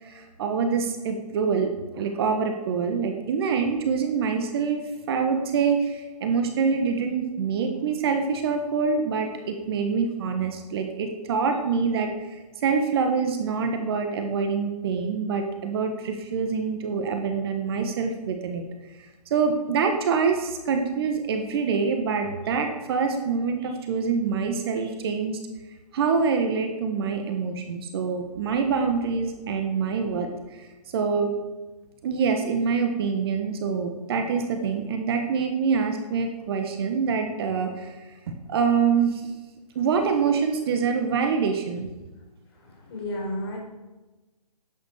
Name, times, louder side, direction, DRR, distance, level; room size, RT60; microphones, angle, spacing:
voice 1, 0.0-18.6 19.3-25.4 25.9-30.7 30.9-31.3 32.0-37.9 38.5-39.3 39.7-41.9, right 5 dB, 40° right, 5 dB, 1.4 m, -25 dB
voice 2, 42.9-43.6, left 1 dB, 40° left, 0 dB, 4.6 m, -31 dB
11.0 x 8.2 x 6.7 m, 1.1 s
figure-of-eight pair, 140°, 20 cm